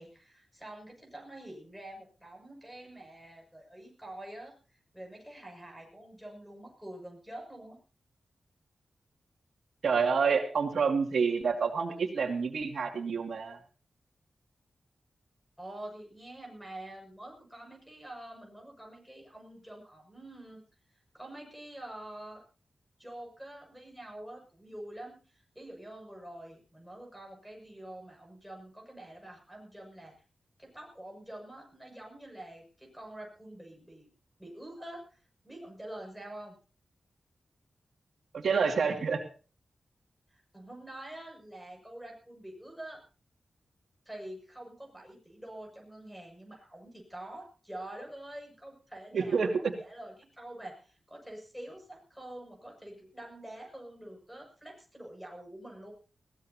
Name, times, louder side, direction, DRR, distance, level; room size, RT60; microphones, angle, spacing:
voice 1, 0.0-7.8 15.6-20.6 21.1-22.4 23.0-30.1 30.6-34.1 34.4-36.6 40.3-43.0 44.0-55.9, right 1 dB, ahead, 2 dB, 6.7 m, -46 dB
voice 2, 9.8-13.6 38.3-39.2 49.1-49.7, right 5 dB, 80° right, 3 dB, 2.4 m, -28 dB
21.0 x 17.5 x 2.9 m, 0.37 s
wide cardioid pair, 130°, 0 cm